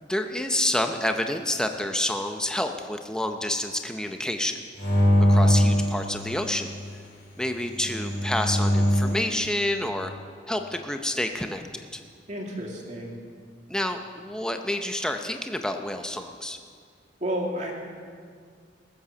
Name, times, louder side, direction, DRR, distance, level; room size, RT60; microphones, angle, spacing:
voice 1, 0.0-4.6 5.3-6.8 7.4-10.1 10.5-11.6 11.9-12.0 13.7-16.6, left 1 dB, 5° left, 5 dB, 0.6 m, -28 dB
sound 1, 4.8-6.7 7.7-9.2, equal, 60° left, 4.0 m, -22 dB
voice 2, 12.3-13.2 17.2-17.7, equal, 40° right, -1 dB, 2.4 m, -31 dB
19.5 x 8.6 x 6.8 m, 2.1 s
head